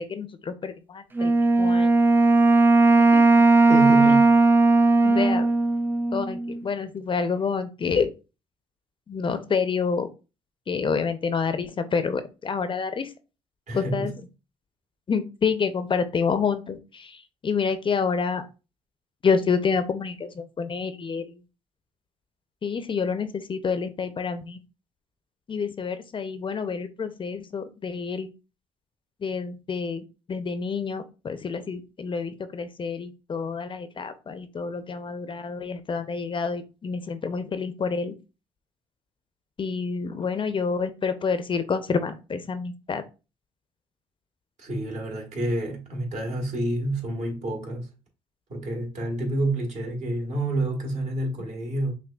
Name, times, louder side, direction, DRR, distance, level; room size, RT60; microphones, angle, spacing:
voice 1, 0.0-1.3 1.6-1.9 3.0-3.2 4.0-4.2 5.0-5.5 6.1-8.1 9.1-10.1 10.7-13.1 13.7-14.1 15.1-18.5 19.2-21.4 22.6-24.6 25.5-28.3 29.2-30.0 30.3-38.1 39.6-43.0, left 5 dB, 35° left, 0.5 m, -28 dB
Wind instrument woodwind instrument, 1.2-6.6, right 3 dB, 15° right, 0.5 m, -18 dB
voice 2, 3.7-4.4 13.7-14.1 44.6-47.9 48.5-51.9, right 2 dB, 55° right, 1.5 m, -28 dB
5.9 x 2.2 x 2.3 m
supercardioid pair, 70°, 14 cm